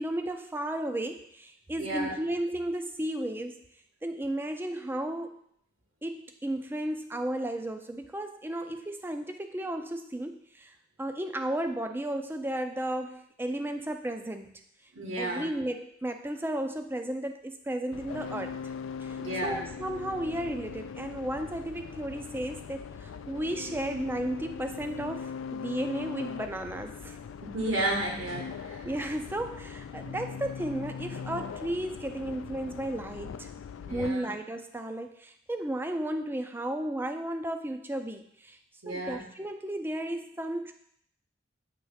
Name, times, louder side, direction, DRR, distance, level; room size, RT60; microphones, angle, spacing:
voice 1, 0.0-3.6 4.0-5.4 6.0-14.6 15.2-18.7 19.0-27.2 28.8-33.5 33.9-38.6 38.9-40.7, right 1 dB, 10° right, 7 dB, 0.4 m, -34 dB
voice 2, 1.8-2.1 14.9-15.5 19.2-19.6 27.5-28.9 33.9-34.3 38.8-39.2, right 1 dB, 85° right, -2 dB, 2.2 m, -32 dB
sound 1, 17.9-34.1, left 6 dB, 75° left, 0.3 m, -40 dB
8.1 x 3.1 x 5.7 m, 0.70 s
head